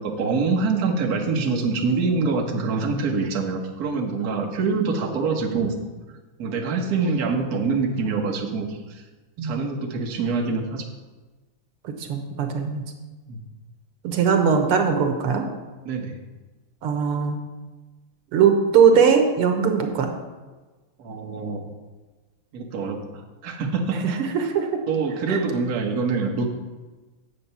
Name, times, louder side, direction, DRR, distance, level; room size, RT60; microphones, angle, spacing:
voice 1, 0.0-5.8 6.4-9.0 9.4-10.9 13.3-13.4 15.8-16.2 21.0-21.6 22.5-23.0 23.4-24.2 24.9-26.5, right 4 dB, 50° right, 2 dB, 1.4 m, -25 dB
voice 2, 9.4-9.7 11.8-12.8 14.0-15.4 16.8-17.4 18.3-20.1 24.0-24.7 25.3-25.4, right 6 dB, 85° right, 5 dB, 2.0 m, -20 dB
8.9 x 7.4 x 5.5 m, 1.2 s
omnidirectional pair, 2.4 m